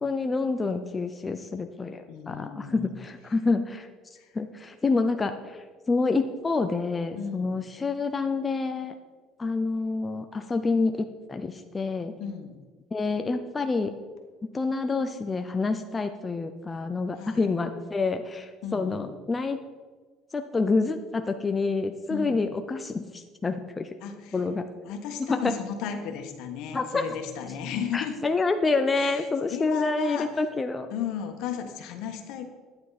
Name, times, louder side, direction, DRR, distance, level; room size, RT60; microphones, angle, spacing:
voice 1, 0.0-3.9 4.3-8.9 9.4-12.1 12.9-13.9 14.5-19.6 20.3-23.9 24.3-24.7 25.3-25.5 26.7-27.1 27.9-30.9, left 3 dB, 20° left, 6 dB, 0.5 m, -28 dB
voice 2, 2.1-2.9 4.1-4.3 7.1-7.5 12.2-12.6 17.2-17.5 18.6-19.1 22.1-22.4 24.0-24.4 24.8-28.2 28.9-30.4 30.9-32.5, left 8 dB, 70° left, 5 dB, 1.5 m, -35 dB
11.5 x 9.6 x 4.2 m, 1.4 s
cardioid pair, 135°, 0 cm